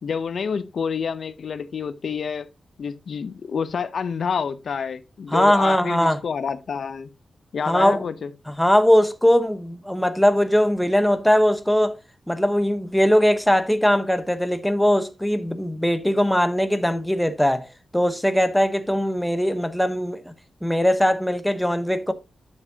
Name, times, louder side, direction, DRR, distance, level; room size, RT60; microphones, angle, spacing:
voice 1, 0.0-2.5 2.8-7.1 7.5-8.3, left 6 dB, 65° left, 0.6 m, -28 dB
voice 2, 5.3-6.2 7.7-8.0 8.5-12.0 12.3-17.7 17.9-20.3 20.6-22.1, equal, 5° left, 0.9 m, -20 dB
9.6 x 7.1 x 2.8 m
wide cardioid pair, 95°, 0 cm